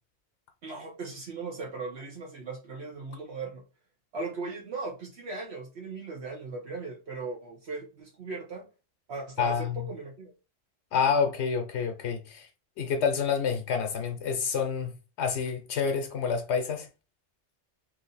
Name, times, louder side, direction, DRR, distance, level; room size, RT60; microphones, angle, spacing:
voice 1, 0.6-3.6 4.1-8.7 9.1-9.5 9.9-10.3, right 3 dB, 70° right, 1.2 m, -38 dB
voice 2, 9.4-9.9 10.9-12.5 12.8-14.9 15.2-16.9, left 6 dB, 80° left, 0.9 m, -28 dB
3.1 x 2.6 x 3.9 m
omnidirectional pair, 1.1 m